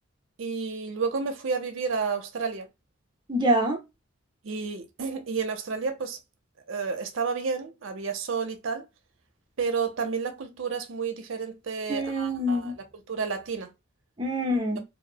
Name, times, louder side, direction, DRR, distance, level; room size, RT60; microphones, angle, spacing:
voice 1, 0.4-2.7 4.4-6.2 6.7-8.8 9.6-13.7, right 5 dB, 70° right, 0.5 m, -31 dB
voice 2, 3.3-3.8 11.9-12.7 14.2-14.8, equal, 20° right, 0.5 m, -25 dB
2.6 x 2.0 x 2.6 m
head